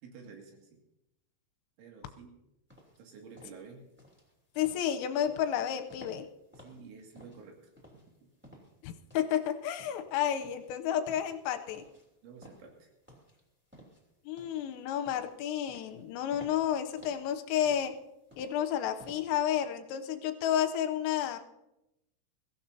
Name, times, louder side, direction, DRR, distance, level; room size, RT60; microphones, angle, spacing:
voice 1, 0.0-0.8 1.8-2.3 3.0-3.8 6.6-8.0 12.2-12.9, right 5 dB, 70° right, 1 dB, 4.5 m, -51 dB
sound 1, 2.7-19.6, equal, 5° right, 1.4 m, -56 dB
voice 2, 4.6-6.3 8.8-11.8 14.3-17.9 18.4-21.4, left 10 dB, 85° left, 7 dB, 3.3 m, -31 dB
22.5 x 15.0 x 2.8 m, 0.90 s
omnidirectional pair, 5.9 m